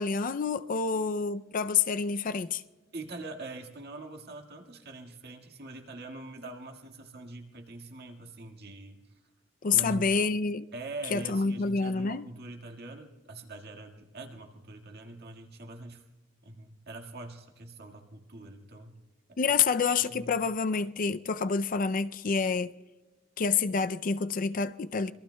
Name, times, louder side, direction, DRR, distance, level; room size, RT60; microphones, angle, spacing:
voice 1, 0.0-2.6 9.6-10.7 11.1-12.2 19.4-22.7 23.4-25.1, left 5 dB, 45° left, 0.4 m, -28 dB
voice 2, 2.9-9.0 9.7-10.2 10.7-16.0 16.4-19.0 19.3-19.4 20.1-20.5, right 2 dB, 55° right, 1.9 m, -43 dB
26.5 x 22.5 x 2.3 m
head